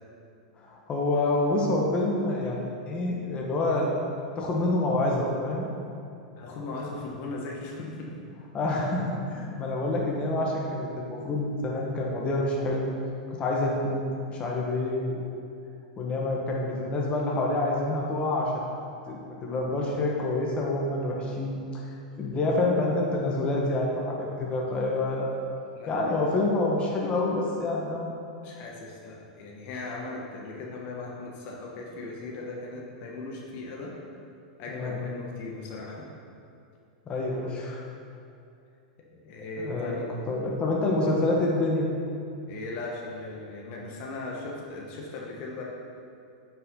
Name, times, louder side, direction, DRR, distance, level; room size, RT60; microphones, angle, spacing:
voice 1, 0.6-3.9 4.3-5.7 8.5-12.9 13.4-15.2 16.0-18.6 19.1-21.8 22.2-25.3 25.9-28.1 34.7-35.0 37.1-37.8 39.6-41.9, left 2 dB, 25° left, -2 dB, 1.4 m, -27 dB
voice 2, 6.4-8.2 25.7-26.0 28.4-34.0 34.6-36.1 39.1-40.1 42.5-45.6, left 2 dB, 50° left, -2 dB, 1.4 m, -38 dB
9.5 x 5.7 x 3.9 m, 2.6 s
hypercardioid pair, 115°, 4 cm